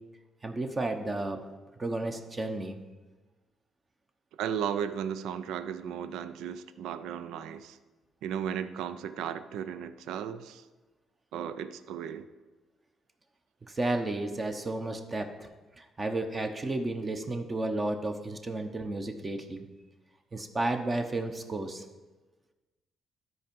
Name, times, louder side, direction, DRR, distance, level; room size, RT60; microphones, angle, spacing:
voice 1, 0.4-1.4 1.8-2.8 13.7-15.5 15.8-19.7 20.3-21.8, right 2 dB, 30° right, 5 dB, 0.9 m, -32 dB
voice 2, 4.4-7.8 8.2-10.6 11.3-12.3, right 8 dB, 90° right, 13 dB, 0.4 m, -35 dB
12.5 x 4.7 x 5.3 m, 1.2 s
cardioid pair, 90°, 0 cm